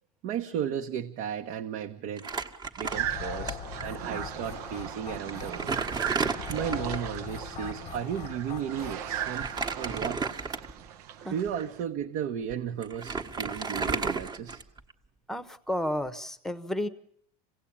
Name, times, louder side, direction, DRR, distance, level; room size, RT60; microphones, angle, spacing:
voice 1, 0.2-2.3 2.8-5.8 6.5-9.5 9.8-10.3 11.3-14.6, right 9 dB, 55° right, 3 dB, 1.2 m, -34 dB
Crumpling crinkling, 2.2-3.5 3.8-3.9 4.8-4.9 5.3-7.1 9.3-10.9 11.5-11.6 12.5-12.6 12.8-14.9, right 4 dB, 20° right, 1.4 m, -32 dB
sound 1, 2.8-9.7, left 8 dB, 25° left, 0.9 m, -41 dB
sound 2, 2.9-11.8, right 11 dB, 85° right, 1.3 m, -38 dB
voice 2, 15.3-16.9, left 1 dB, ahead, 13 dB, 1.0 m, -31 dB
27.0 x 17.0 x 8.8 m, 0.70 s
cardioid pair, 150°, 20 cm